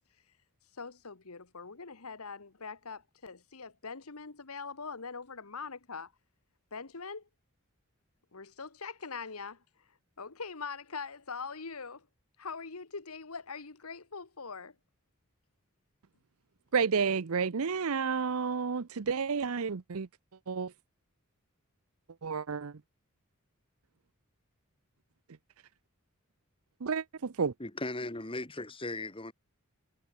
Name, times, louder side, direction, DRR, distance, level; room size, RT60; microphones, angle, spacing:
voice 1, 0.8-6.1 6.7-7.3 8.3-9.6 10.2-12.1 12.4-14.8, left 5 dB, 80° left, 1.6 m, -42 dB
voice 2, 16.7-20.1 20.5-20.7 22.2-22.8 26.8-27.5, right 5 dB, 75° right, 0.7 m, -31 dB
voice 3, 27.6-29.3, left 2 dB, 25° left, 2.4 m, -37 dB
head